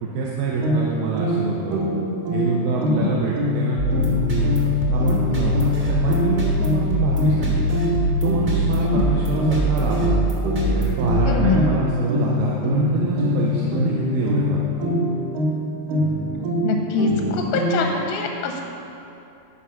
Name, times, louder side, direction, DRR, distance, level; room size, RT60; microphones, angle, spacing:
voice 1, 0.0-1.8 2.3-7.6 8.1-10.3 10.7-14.6, right 4 dB, 85° right, -4 dB, 2.6 m, -26 dB
sound 1, 0.6-18.1, equal, 70° right, 2.6 m, -24 dB
sound 2, 3.8-12.0, left 1 dB, 55° right, 0.9 m, -23 dB
voice 2, 11.2-11.6 16.6-18.6, left 5 dB, 85° left, 2 dB, 2.3 m, -24 dB
12.0 x 4.9 x 5.7 m, 2.8 s
omnidirectional pair, 4.2 m